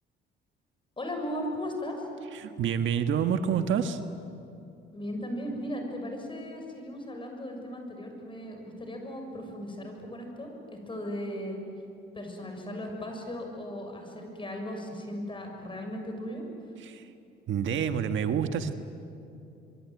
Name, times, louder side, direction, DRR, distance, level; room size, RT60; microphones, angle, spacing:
voice 1, 1.0-2.1 4.9-10.6 10.9-11.6 12.1-16.5, equal, 25° left, 3 dB, 6.9 m, -37 dB
voice 2, 2.3-4.0 16.8-17.1 17.5-18.7, right 8 dB, 75° right, 8 dB, 1.5 m, -28 dB
25.5 x 23.5 x 9.4 m, 2.7 s
cardioid pair, 90°, 20 cm